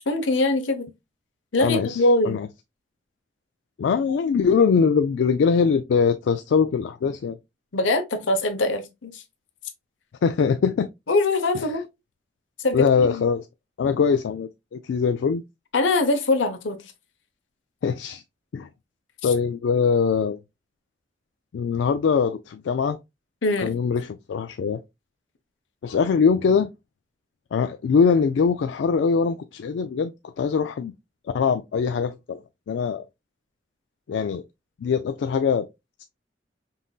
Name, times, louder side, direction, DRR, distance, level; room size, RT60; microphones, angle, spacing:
voice 1, 0.1-0.9 1.5-2.4 7.7-9.2 11.1-11.9 12.6-12.9 13.1-13.2 15.7-16.8 23.4-23.7, left 2 dB, 90° left, 0.8 m, -22 dB
voice 2, 1.6-2.5 3.8-7.4 10.2-10.9 11.5-11.7 12.7-13.5 13.8-15.4 17.8-18.2 18.5-18.7 19.2-20.4 21.5-23.0 23.6-24.8 25.8-26.7 27.5-30.9 31.2-32.4 32.7-33.0 34.1-34.4 34.8-35.7, left 6 dB, 70° left, 0.3 m, -22 dB
5.4 x 2.6 x 2.3 m
head